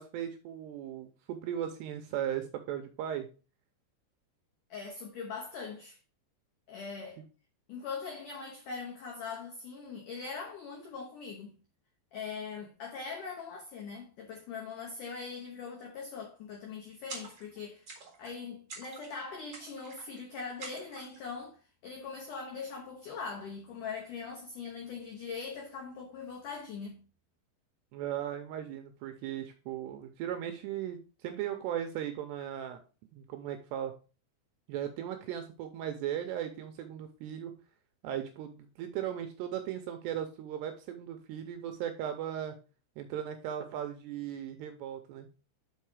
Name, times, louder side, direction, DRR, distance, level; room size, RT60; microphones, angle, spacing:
voice 1, 0.0-3.3 27.9-32.8 33.1-33.9 34.7-37.5 38.0-42.6 43.0-45.3, right 10 dB, 85° right, 2.5 m, -37 dB
voice 2, 4.7-6.0 6.7-7.2 7.7-11.6 12.1-17.9 18.2-27.0, left 5 dB, 90° left, 1.8 m, -41 dB
sound 1, 17.1-17.6 17.9-18.4 18.7-19.2 19.5-20.2 20.6-21.2, right 3 dB, 65° right, 1.1 m, -47 dB
5.6 x 5.5 x 4.7 m
omnidirectional pair, 5.4 m